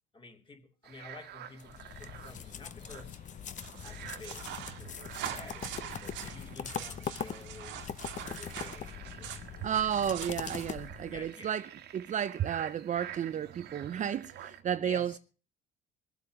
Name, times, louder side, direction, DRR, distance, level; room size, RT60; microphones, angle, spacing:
voice 1, 0.1-3.2 3.8-4.5 4.8-7.7 8.2-9.7 11.1-11.6 14.8-15.2, left 2 dB, 25° left, 2.8 m, -51 dB
sound 1, 0.8-14.6, right 11 dB, 60° right, 1.6 m, -50 dB
sound 2, 1.6-11.3, left 8 dB, 40° left, 0.9 m, -42 dB
sound 3, 3.6-10.7, right 10 dB, 80° right, 1.9 m, -44 dB
voice 2, 9.6-15.2, right 9 dB, 40° right, 0.6 m, -32 dB
21.5 x 7.7 x 6.4 m
cardioid pair, 115°, 19 cm